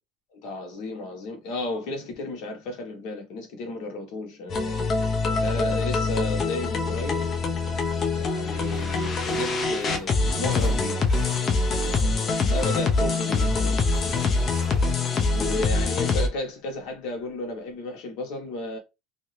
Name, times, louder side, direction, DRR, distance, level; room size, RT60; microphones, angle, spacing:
voice 1, 0.3-4.9 5.4-7.3 8.1-10.1 10.4-11.1 11.8-13.8 14.7-18.8, left 2 dB, 65° left, 1.2 m, -34 dB
sound 1, 4.5-16.3, left 3 dB, 30° left, 0.6 m, -24 dB
sound 2, 8.7-12.1 12.4-15.4, left 1 dB, 5° right, 1.4 m, -43 dB
2.9 x 2.7 x 3.1 m
cardioid pair, 155°, 0 cm